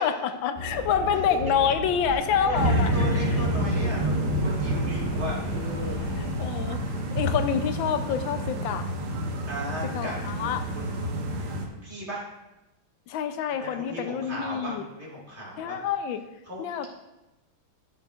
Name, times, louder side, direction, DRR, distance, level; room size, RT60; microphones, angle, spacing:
voice 1, 0.0-2.9 6.2-8.9 9.8-10.6 13.1-14.8 15.6-16.2 16.6-16.9, left 8 dB, 75° left, 9 dB, 1.3 m, -27 dB
sound 1, 0.5-6.4, equal, 25° left, 0.6 m, -36 dB
voice 2, 2.1-6.0 9.5-12.2 13.5-15.8 16.5-16.6, equal, 35° right, -6 dB, 2.1 m, -37 dB
sound 2, 2.5-11.7, right 1 dB, 60° right, 1.4 m, -28 dB
13.5 x 6.6 x 2.4 m, 0.98 s
omnidirectional pair, 2.3 m